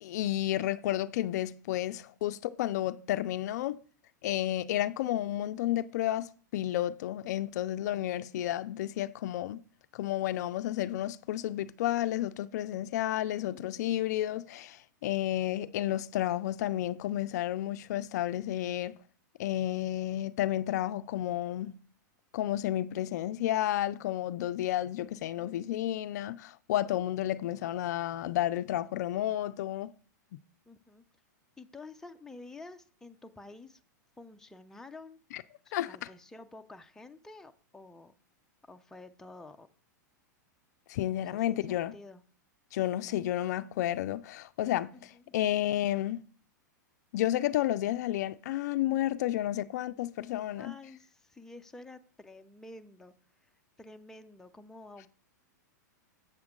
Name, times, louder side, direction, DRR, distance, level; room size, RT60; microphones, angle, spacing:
voice 1, 0.0-3.8 4.2-9.6 9.9-19.0 19.4-21.7 22.3-29.9 35.3-35.4 35.7-36.1 40.9-41.9 42.7-46.2 47.1-50.7, left 13 dB, 65° left, 0.4 m, -31 dB
voice 2, 13.5-13.9 30.7-31.0 31.6-33.8 34.2-35.2 35.7-38.2 38.7-39.7 41.1-42.2 44.9-45.4 50.6-53.1 53.4-53.5 53.8-55.1, left 2 dB, 5° left, 0.6 m, -50 dB
7.9 x 7.1 x 3.7 m
hypercardioid pair, 115°, 10 cm